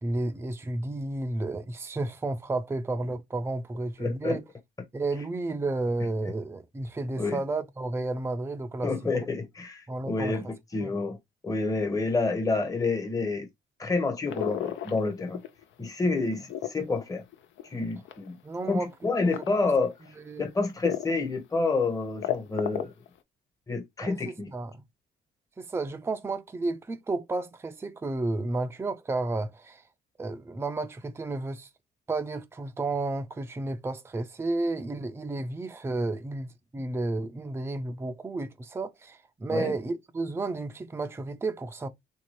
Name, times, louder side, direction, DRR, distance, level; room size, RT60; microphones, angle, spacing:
voice 1, 0.0-4.4 4.9-8.9 9.9-10.4 10.8-11.0 18.4-18.9 19.2-19.7 20.2-20.5 24.0-24.8 25.6-29.8 30.2-31.7 32.1-41.9, right 2 dB, 10° right, 0.4 m, -32 dB
voice 2, 4.0-4.4 7.2-7.4 8.8-10.4 10.7-11.2 11.4-13.5 13.8-15.4 15.8-17.2 17.7-18.4 18.6-19.9 20.4-22.9 23.7-24.5 39.5-39.7, left 3 dB, 15° left, 0.8 m, -28 dB
sound 1, 14.3-15.6 16.0-18.3 19.1-19.5 20.1-20.2 20.8-21.3 21.6-21.7 22.0-23.1, left 12 dB, 75° left, 0.5 m, -33 dB
3.2 x 2.7 x 3.0 m
cardioid pair, 90°, 20 cm